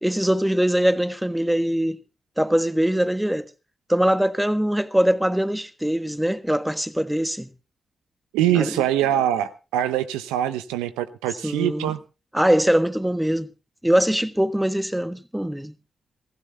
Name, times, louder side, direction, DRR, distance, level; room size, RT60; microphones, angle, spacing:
voice 1, 0.0-2.0 2.4-3.5 3.9-7.5 8.5-8.8 11.4-11.9 12.3-13.5 13.8-15.7, equal, 5° right, 1.3 m, -22 dB
voice 2, 8.3-12.0, right 11 dB, 90° right, 0.7 m, -23 dB
25.5 x 15.5 x 2.3 m
hypercardioid pair, 40°, 0 cm